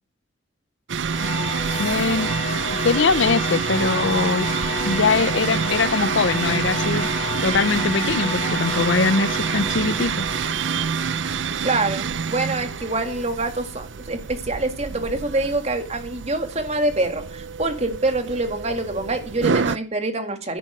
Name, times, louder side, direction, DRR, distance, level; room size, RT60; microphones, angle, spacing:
sound 1, 0.9-19.8, right 6 dB, 60° right, 0.5 m, -27 dB
sound 2, 1.1-13.3, left 2 dB, 35° left, 4.1 m, -31 dB
voice 1, 1.8-2.3 2.8-4.5 4.8-7.1 7.4-10.3, left 4 dB, 65° left, 0.6 m, -22 dB
voice 2, 11.6-20.6, right 2 dB, 30° right, 1.9 m, -25 dB
10.5 x 10.0 x 6.2 m
head